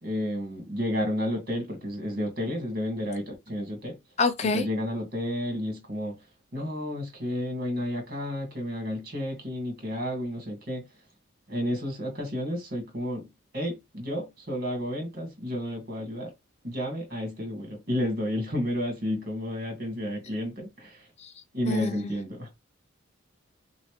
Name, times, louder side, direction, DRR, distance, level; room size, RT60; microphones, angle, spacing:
voice 1, 0.0-4.0 4.4-6.3 6.5-10.9 11.5-13.3 13.5-16.3 16.6-21.1 21.5-22.6, equal, 45° right, 2.2 m, -31 dB
voice 2, 4.2-4.6 21.2-21.3 21.7-22.2, left 4 dB, 35° left, 0.5 m, -26 dB
6.0 x 2.7 x 3.2 m
head